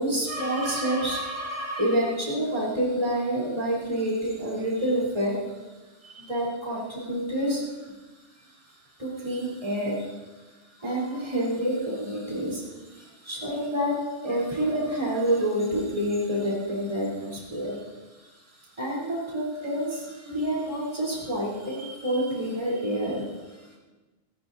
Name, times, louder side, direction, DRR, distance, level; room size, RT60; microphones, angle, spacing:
voice 1, 0.0-5.7 6.0-7.9 8.3-8.5 9.0-10.2 10.7-23.8, equal, 30° right, -5 dB, 4.0 m, -28 dB
26.0 x 14.0 x 2.8 m, 1.2 s
omnidirectional pair, 1.2 m